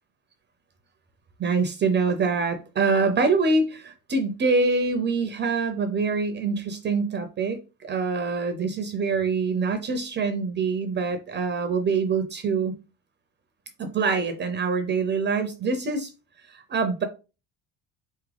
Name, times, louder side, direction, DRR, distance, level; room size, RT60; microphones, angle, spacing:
voice 1, 1.4-12.8 13.8-16.1 16.5-17.0, right 4 dB, 30° right, 0.6 m, -25 dB
4.3 x 3.6 x 3.3 m
cardioid pair, 145°, 36 cm